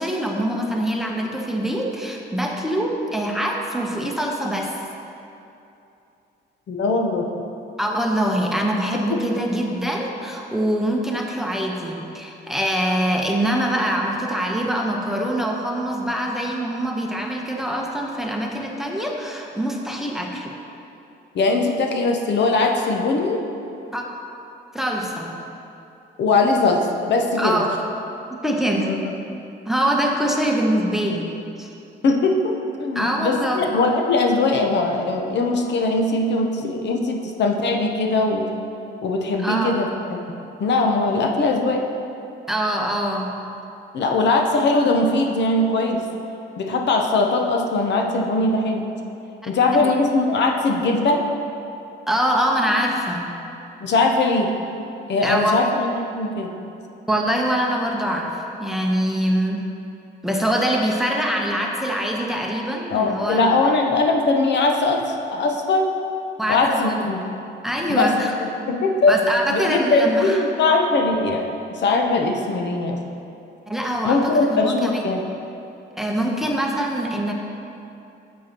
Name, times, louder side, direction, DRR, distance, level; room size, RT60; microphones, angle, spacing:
voice 1, 0.0-4.7 7.8-20.5 23.9-24.0 24.7-25.4 27.4-27.7 28.3-29.0 29.7-31.3 31.6-31.7 32.9-33.7 39.4-39.8 42.5-43.3 49.4-49.9 52.1-53.3 55.2-55.6 57.1-59.7 60.2-63.5 66.4-67.0 67.6-68.3 69.1-70.4 73.7-75.0 76.0-77.3, right 1 dB, ahead, 0 dB, 0.9 m, -24 dB
voice 2, 6.7-7.3 8.9-9.2 21.3-23.4 26.2-27.6 28.8-29.1 32.0-38.4 39.0-39.9 40.6-41.8 43.9-46.0 46.6-48.9 49.5-51.2 53.8-54.5 55.1-55.9 56.2-56.5 62.9-65.9 66.5-67.2 67.9-68.1 68.7-69.1 69.5-71.5 71.8-73.0 74.0-75.2, left 3 dB, 60° left, 2 dB, 0.8 m, -20 dB
9.3 x 7.5 x 2.9 m, 2.8 s
cardioid pair, 90°, 20 cm